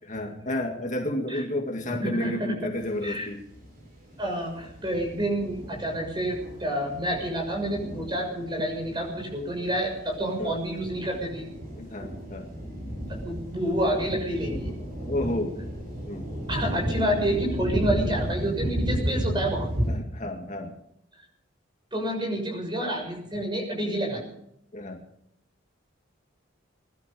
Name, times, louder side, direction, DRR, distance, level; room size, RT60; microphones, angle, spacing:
voice 1, 0.0-3.4 7.8-7.9 10.4-10.6 11.8-12.6 15.1-15.6 16.0-16.3 19.9-20.8 24.7-25.0, left 1 dB, 40° left, 3 dB, 2.2 m, -31 dB
voice 2, 2.0-2.7 3.0-3.3 4.2-11.4 13.1-14.7 16.5-19.7 21.9-24.2, right 1 dB, 25° right, 1 dB, 6.5 m, -29 dB
sound 1, 2.7-3.0 3.3-19.9, equal, 50° right, 7.5 m, -33 dB
22.5 x 12.5 x 5.3 m, 0.75 s
head